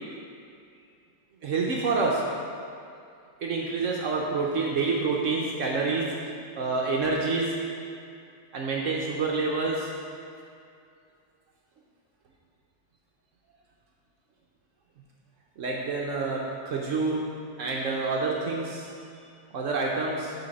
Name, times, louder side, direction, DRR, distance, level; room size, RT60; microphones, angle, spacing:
voice 1, 1.4-2.2 3.4-6.1 6.6-7.5 8.5-9.9 15.6-16.4 16.6-17.2 17.6-18.9 19.5-20.3, right 3 dB, 65° right, -2 dB, 0.8 m, -27 dB
6.8 x 4.1 x 5.2 m, 2.4 s
omnidirectional pair, 2.0 m